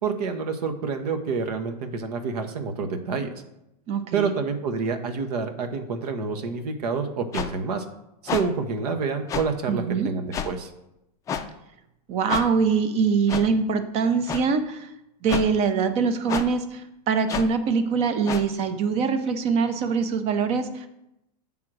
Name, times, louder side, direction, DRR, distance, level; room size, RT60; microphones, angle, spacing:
voice 1, 0.0-3.3 4.1-7.8 8.2-10.7, right 5 dB, 70° right, 6 dB, 1.0 m, -28 dB
voice 2, 3.9-4.3 9.7-10.1 12.1-14.9 15.2-20.9, right 5 dB, 30° right, 9 dB, 0.7 m, -23 dB
sound 1, 7.3-7.5 8.3-8.4 9.3-9.5 10.3-10.5 11.3-11.4 12.3-12.4 13.3-13.5 14.3-14.4 15.3-15.5 16.3-16.5 17.3-17.5 18.3-18.4, left 7 dB, 15° left, 0.4 m, -28 dB
7.5 x 3.6 x 6.1 m, 0.86 s
supercardioid pair, 140°, 20 cm